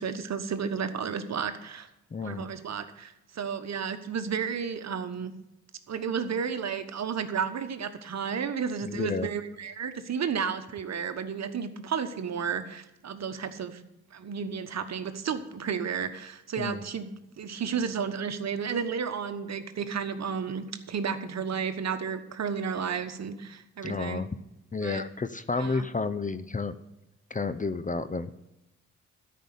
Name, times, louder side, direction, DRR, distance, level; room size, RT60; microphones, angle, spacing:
voice 1, 0.0-1.9 2.2-5.3 5.9-13.8 14.1-17.1 17.4-24.2 24.8-25.0 25.6-25.9, right 6 dB, 45° right, 10 dB, 1.3 m, -32 dB
voice 2, 2.1-2.5 8.8-9.3 16.6-16.8 23.8-24.3 24.7-26.8 27.3-28.3, left 4 dB, 20° left, 13 dB, 0.7 m, -31 dB
13.0 x 5.7 x 8.0 m, 0.92 s
hypercardioid pair, 45°, 36 cm